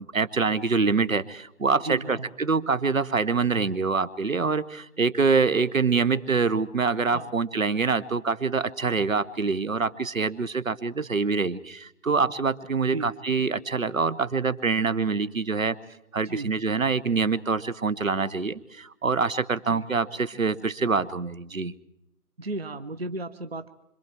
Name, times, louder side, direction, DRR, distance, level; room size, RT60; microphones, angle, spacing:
voice 1, 0.0-15.8 16.1-21.7, right 4 dB, 60° right, 15 dB, 1.1 m, -25 dB
voice 2, 1.8-2.3 7.1-7.3 12.9-13.1 16.2-16.5 19.7-19.8 22.4-23.7, right 2 dB, 40° right, 11 dB, 0.9 m, -34 dB
26.0 x 25.5 x 4.5 m, 0.80 s
figure-of-eight pair, 165°, 45 cm